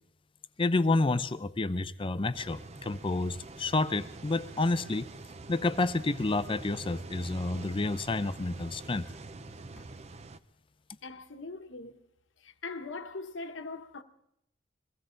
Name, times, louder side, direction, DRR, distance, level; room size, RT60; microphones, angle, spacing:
voice 1, 0.6-5.1 5.5-9.0, left 2 dB, 25° left, 0.5 m, -29 dB
sound 1, 2.3-10.4, right 3 dB, 35° right, 0.6 m, -46 dB
voice 2, 11.0-12.0 12.4-14.0, left 3 dB, 70° left, 1.1 m, -41 dB
23.0 x 15.5 x 3.9 m
head